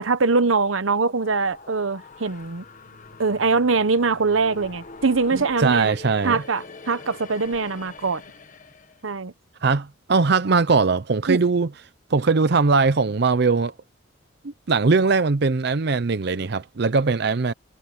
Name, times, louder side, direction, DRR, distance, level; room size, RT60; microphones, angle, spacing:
voice 1, 0.0-2.6 3.2-5.9 6.2-8.2 9.0-9.3 11.3-11.4, right 4 dB, 90° right, 1.0 m, -22 dB
sound 1, 0.8-9.1, left 3 dB, 40° left, 1.3 m, -43 dB
voice 2, 5.3-6.4 9.6-11.7 12.1-13.7 14.4-17.5, right 4 dB, 55° right, 0.6 m, -20 dB
head